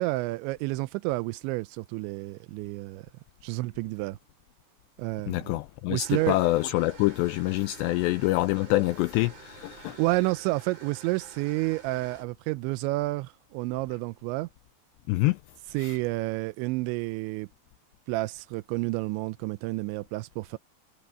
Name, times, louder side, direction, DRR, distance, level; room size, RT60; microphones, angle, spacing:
voice 1, 0.0-3.1 3.4-4.2 5.0-5.6 5.9-6.4 9.8-14.5 15.7-17.5 18.1-20.6, right 21 dB, 85° right, 2.8 m, -30 dB
voice 2, 5.3-10.0 15.1-15.4 15.8-15.9, left 19 dB, 85° left, 2.4 m, -26 dB
sound 1, 6.0-12.2, right 5 dB, 50° right, 7.9 m, -49 dB
omnidirectional pair, 5.5 m